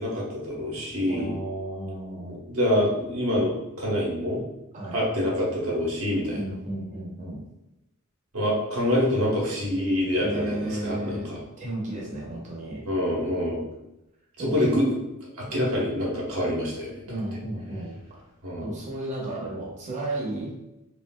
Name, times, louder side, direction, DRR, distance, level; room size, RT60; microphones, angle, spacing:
voice 1, 0.0-1.3 2.3-4.4 4.9-6.4 8.3-11.4 12.8-13.6 14.4-15.0 15.4-17.0 18.4-18.7, left 1 dB, 80° right, -4 dB, 1.0 m, -26 dB
voice 2, 1.1-2.4 4.7-5.0 6.3-7.5 10.2-11.3 11.6-12.9 14.4-14.7 17.1-18.2 18.6-20.5, right 1 dB, 35° right, -4 dB, 0.8 m, -33 dB
3.2 x 2.5 x 2.2 m, 0.92 s
head